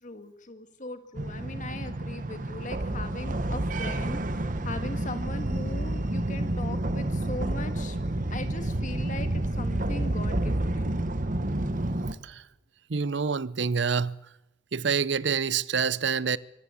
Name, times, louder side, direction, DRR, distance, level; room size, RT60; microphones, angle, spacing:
voice 1, 0.0-8.0 8.3-10.9, left 2 dB, 40° left, 1.9 m, -39 dB
sound 1, 1.2-12.1, right 1 dB, 45° right, 1.1 m, -29 dB
voice 2, 12.9-14.2 14.7-16.4, right 6 dB, 60° right, 0.6 m, -27 dB
24.5 x 14.0 x 8.3 m
head